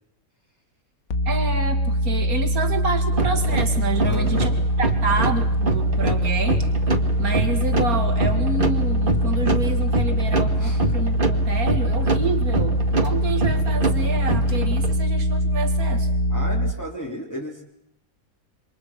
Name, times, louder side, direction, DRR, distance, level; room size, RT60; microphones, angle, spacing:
sound 1, 1.1-16.7, equal, 75° left, 1.7 m, -22 dB
voice 1, 1.3-4.5 4.8-6.7 7.2-16.1, right 3 dB, 80° right, 6 dB, 2.8 m, -28 dB
sound 2, 3.1-15.0, right 3 dB, 35° right, 2.3 m, -27 dB
voice 2, 4.0-4.6 10.6-10.8 16.3-17.6, equal, 10° left, -3 dB, 3.4 m, -33 dB
28.5 x 26.0 x 6.0 m, 0.75 s
omnidirectional pair, 1.5 m